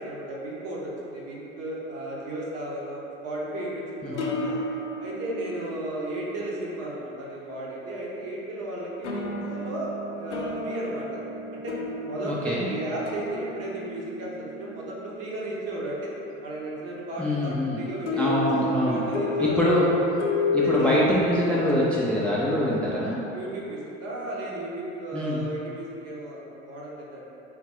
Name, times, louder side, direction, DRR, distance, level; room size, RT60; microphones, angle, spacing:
voice 1, 0.0-4.6 5.0-9.9 10.2-11.2 11.5-11.7 12.0-16.1 16.4-19.8 20.3-21.0 23.3-27.3, right 1 dB, 45° right, -4 dB, 0.9 m, -34 dB
sound 1, 3.4-7.2 9.0-15.2 18.1-21.8, left 2 dB, 80° left, 0.5 m, -31 dB
voice 2, 4.0-4.5 12.2-12.7 17.2-17.8 18.2-19.0 19.4-19.9 20.5-23.2 25.1-25.5, left 1 dB, 5° left, -7 dB, 0.5 m, -24 dB
3.6 x 3.6 x 3.0 m, 3.0 s
figure-of-eight pair, 60°, 35 cm